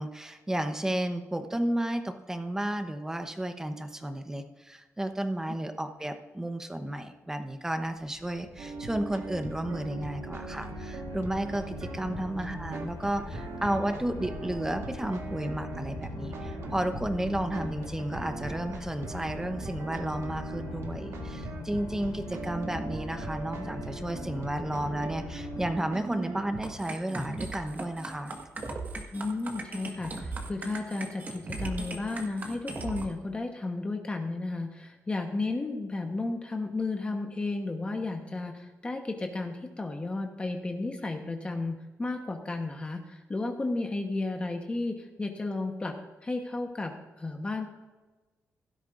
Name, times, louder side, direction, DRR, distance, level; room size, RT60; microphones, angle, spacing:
voice 1, 0.0-28.3, right 1 dB, 10° right, 7 dB, 0.9 m, -32 dB
sound 1, 8.1-25.7, left 6 dB, 50° left, 0.4 m, -42 dB
sound 2, 8.6-26.8, right 4 dB, 75° right, 1.5 m, -40 dB
sound 3, 26.6-33.1, right 2 dB, 35° right, 1.6 m, -37 dB
voice 2, 29.1-45.9 46.2-47.7, left 2 dB, 20° left, 3 dB, 1.1 m, -33 dB
16.5 x 12.5 x 2.6 m, 1.2 s
wide cardioid pair, 130°, 5 cm